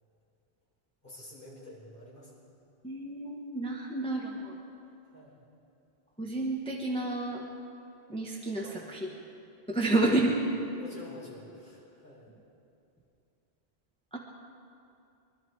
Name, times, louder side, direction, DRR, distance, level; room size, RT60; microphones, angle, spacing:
voice 1, 1.0-2.3 5.0-5.4 8.6-8.9 9.9-10.0 10.3-12.3, left 1 dB, 50° left, -6 dB, 4.9 m, -49 dB
voice 2, 2.8-4.6 6.2-7.5 8.1-9.0 9.7-10.3 14.1-14.2, right 2 dB, 5° left, -3 dB, 1.2 m, -30 dB
23.5 x 12.0 x 4.7 m, 2.7 s
omnidirectional pair, 1.1 m